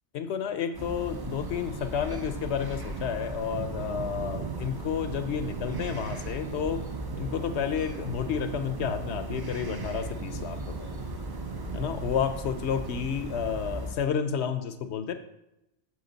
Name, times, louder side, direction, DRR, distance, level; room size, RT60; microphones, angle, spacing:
voice 1, 0.1-6.8 7.2-10.9 11.7-15.1, left 7 dB, 65° left, 10 dB, 0.9 m, -31 dB
sound 1, 0.7-14.0, right 2 dB, 25° right, 0.6 m, -37 dB
sound 2, 1.5-11.9, right 8 dB, 80° right, 0.4 m, -41 dB
8.0 x 6.3 x 4.0 m, 0.89 s
omnidirectional pair, 1.3 m